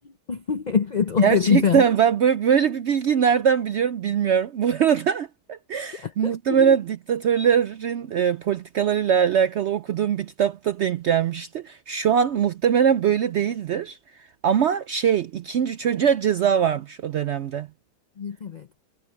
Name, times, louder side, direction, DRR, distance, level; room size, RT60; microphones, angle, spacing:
voice 1, 0.3-1.8 6.2-6.7 18.2-18.7, left 6 dB, 65° left, 0.4 m, -23 dB
voice 2, 1.2-17.7, right 8 dB, 70° right, 0.6 m, -22 dB
omnidirectional pair, 1.7 m